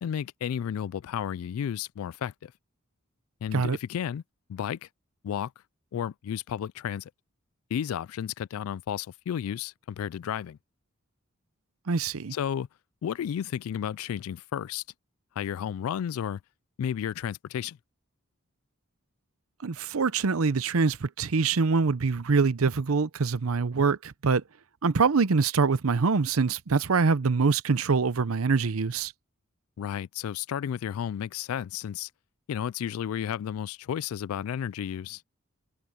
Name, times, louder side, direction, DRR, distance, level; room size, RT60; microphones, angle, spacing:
voice 1, 0.0-2.5 3.4-4.2 4.5-4.9 5.2-5.5 5.9-7.1 7.7-10.6 12.3-12.7 13.0-14.8 15.4-16.4 16.8-17.8 29.8-32.1 32.5-35.2, left 9 dB, 85° left, 0.3 m, -32 dB
voice 2, 11.9-12.3 19.6-24.4 24.8-29.1, right 4 dB, 90° right, 0.7 m, -24 dB
head